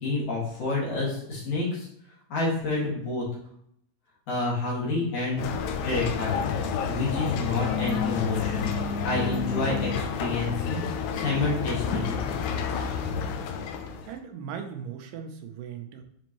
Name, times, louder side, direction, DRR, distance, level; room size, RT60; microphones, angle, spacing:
voice 1, 0.0-1.9 2.3-3.2 4.3-5.4 5.8-6.4 6.9-8.7 9.0-10.8 11.1-12.2, left 3 dB, 65° left, -5 dB, 3.2 m, -28 dB
sound 1, 5.4-14.2, left 6 dB, 80° left, 1.7 m, -30 dB
voice 2, 14.0-16.0, right 7 dB, 85° right, 5 dB, 2.3 m, -38 dB
6.5 x 5.2 x 3.0 m, 0.70 s
omnidirectional pair, 3.8 m